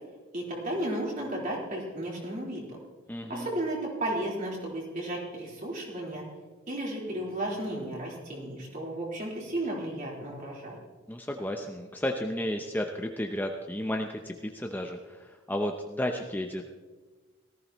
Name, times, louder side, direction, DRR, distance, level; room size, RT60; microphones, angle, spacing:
voice 1, 0.3-2.6 3.3-6.2 6.7-10.8, right 1 dB, 40° right, -4 dB, 4.0 m, -33 dB
voice 2, 3.1-3.5 11.1-16.6, left 1 dB, 10° left, 3 dB, 0.6 m, -33 dB
18.0 x 14.5 x 3.0 m, 1.3 s
head